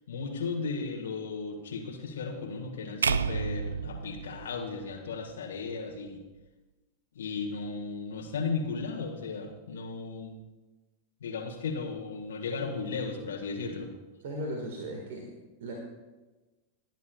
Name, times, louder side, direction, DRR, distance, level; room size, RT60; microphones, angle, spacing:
voice 1, 0.1-6.2 7.2-10.4 11.2-13.9, left 4 dB, 65° left, 1 dB, 1.7 m, -35 dB
sound 1, 3.0-5.3, right 5 dB, 75° right, 0.3 m, -31 dB
voice 2, 14.2-15.3 15.6-15.7, right 1 dB, 55° right, 1 dB, 1.9 m, -36 dB
21.0 x 10.5 x 2.4 m, 1.2 s
figure-of-eight pair, 90°, 0 cm